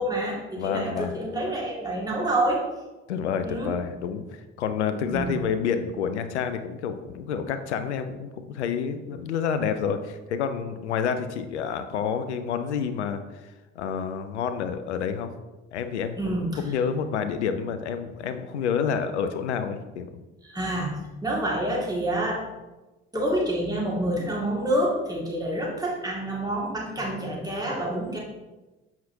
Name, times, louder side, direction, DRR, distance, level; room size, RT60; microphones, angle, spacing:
voice 1, 0.0-2.6 3.4-3.7 5.1-5.3 16.2-16.5 20.4-20.9 21.2-22.4 23.1-28.2, right 1 dB, 10° right, -3 dB, 2.1 m, -27 dB
voice 2, 0.6-1.2 3.1-13.2 13.8-15.3 15.7-16.2 16.6-20.1, left 7 dB, 75° left, 9 dB, 0.6 m, -28 dB
7.5 x 5.8 x 2.8 m, 1.1 s
figure-of-eight pair, 55°, 34 cm